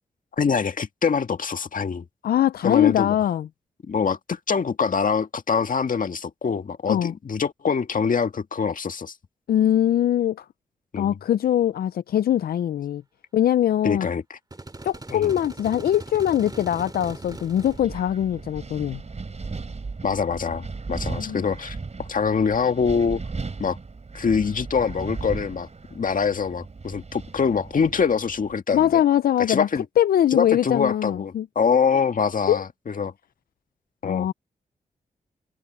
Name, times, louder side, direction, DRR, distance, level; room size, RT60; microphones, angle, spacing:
voice 1, 0.4-2.1 2.6-3.2 3.9-9.1 10.9-11.2 13.8-14.4 15.1-15.3 20.0-23.2 23.6-23.8 24.1-29.0 29.5-29.9 30.3-33.1 34.0-34.3, left 6 dB, 60° left, 1.8 m, -24 dB
voice 2, 2.2-3.5 6.9-7.1 9.5-10.4 11.0-13.0 13.3-14.1 14.8-19.0 21.2-21.5 28.7-29.7 30.0-31.5 32.5-32.6 34.0-34.3, left 11 dB, 80° left, 0.5 m, -22 dB
sound 1, 14.5-17.8, right 2 dB, 25° right, 2.6 m, -39 dB
Wind, 17.0-28.5, right 4 dB, 45° right, 3.3 m, -37 dB
cardioid pair, 45°, 15 cm